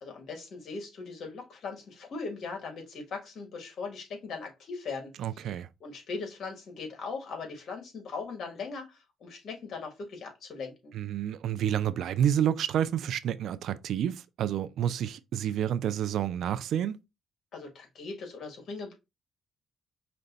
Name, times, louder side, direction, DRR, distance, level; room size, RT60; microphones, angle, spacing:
voice 1, 0.0-5.4 5.8-10.9 17.5-18.9, left 4 dB, 65° left, 1.6 m, -39 dB
voice 2, 5.2-5.7 10.9-17.0, right 10 dB, 75° right, 0.4 m, -29 dB
5.1 x 2.2 x 3.8 m
cardioid pair, 90°, 0 cm